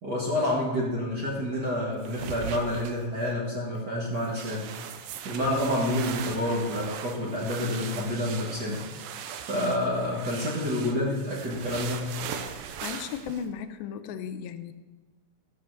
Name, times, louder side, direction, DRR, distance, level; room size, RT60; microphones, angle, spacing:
voice 1, 0.0-4.7 5.2-8.9 9.5-12.1, left 1 dB, 45° right, -4 dB, 1.3 m, -28 dB
sound 1, 2.0-3.3 3.8-3.9 4.2-13.4, right 8 dB, 80° right, 2.4 m, -39 dB
voice 2, 12.4-14.7, left 8 dB, 85° left, 10 dB, 2.4 m, -36 dB
13.5 x 5.7 x 6.4 m, 1.3 s
omnidirectional pair, 4.1 m